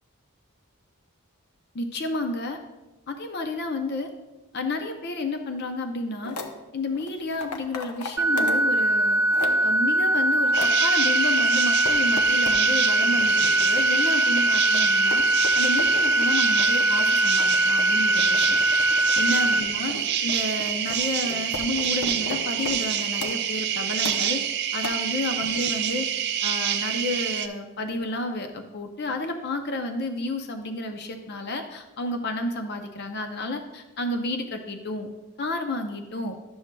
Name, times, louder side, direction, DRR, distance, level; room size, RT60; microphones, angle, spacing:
voice 1, 1.7-2.6 3.1-4.1 4.5-6.4 6.7-9.2 9.6-15.2 15.5-18.6 19.2-20.0 20.2-24.4 24.7-26.1 26.4-35.1 35.4-36.4, left 2 dB, 45° left, 5 dB, 0.5 m, -31 dB
sound 1, 6.2-6.5 6.9-8.7 9.0-9.7 10.1-10.8 11.4-12.7 13.0-13.9 14.4-23.4 24.0-24.5 24.8-24.9, left 3 dB, 90° left, 0.8 m, -37 dB
sound 2, 8.2-19.6, right 1 dB, 10° right, 0.9 m, -22 dB
sound 3, 10.5-27.5, right 9 dB, 50° right, 0.4 m, -27 dB
11.5 x 7.0 x 2.2 m, 1.1 s
head